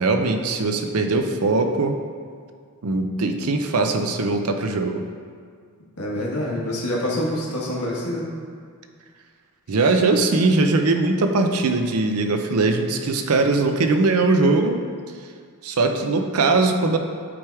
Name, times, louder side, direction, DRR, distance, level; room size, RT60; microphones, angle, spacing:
voice 1, 0.0-2.0 2.8-5.0 9.7-14.8 15.6-17.0, right 3 dB, 75° right, 6 dB, 0.6 m, -20 dB
voice 2, 6.0-8.3, left 1 dB, 90° left, -4 dB, 1.3 m, -26 dB
8.6 x 3.4 x 4.6 m, 2.1 s
head